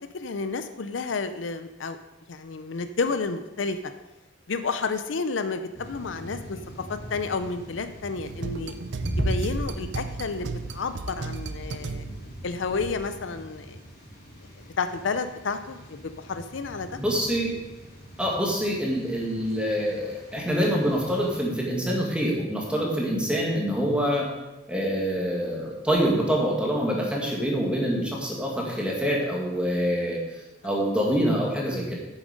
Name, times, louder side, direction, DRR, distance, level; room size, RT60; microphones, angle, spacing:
voice 1, 0.1-2.0 2.3-3.8 4.5-8.7 9.2-12.0 12.4-13.8 14.8-17.0, left 4 dB, 80° left, 10 dB, 0.6 m, -31 dB
sound 1, 5.7-21.4, equal, 55° left, 3.6 m, -39 dB
sound 2, 8.2-12.4, right 4 dB, 70° right, 0.6 m, -35 dB
voice 2, 17.0-17.5 18.2-24.3 24.7-30.2 30.6-31.9, equal, 5° right, -2 dB, 2.0 m, -25 dB
9.1 x 7.2 x 5.2 m, 1.0 s
head